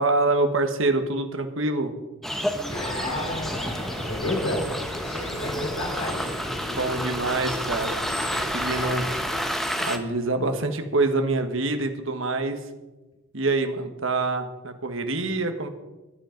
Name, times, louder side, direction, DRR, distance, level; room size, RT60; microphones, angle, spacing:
voice 1, 0.0-1.9 6.6-8.0 8.3-9.1 9.8-12.6 13.3-15.7, right 2 dB, 65° right, 7 dB, 1.5 m, -26 dB
sound 1, 2.2-10.0, equal, ahead, 0.9 m, -30 dB
sound 2, 2.7-9.4, equal, 60° left, 5.7 m, -36 dB
voice 2, 3.0-4.7 5.3-6.3, left 1 dB, 80° left, -1 dB, 4.3 m, -31 dB
15.0 x 10.5 x 5.2 m, 1.1 s
head